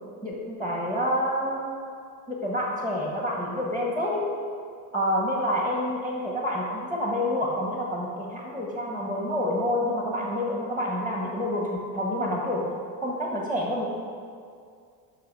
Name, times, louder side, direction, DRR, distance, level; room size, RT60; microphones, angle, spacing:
voice 1, 0.2-1.8 2.3-4.3 4.9-12.6 13.0-13.9, equal, 10° left, -3 dB, 1.4 m, -28 dB
11.0 x 6.3 x 4.8 m, 2.2 s
cardioid pair, 135°, 45 cm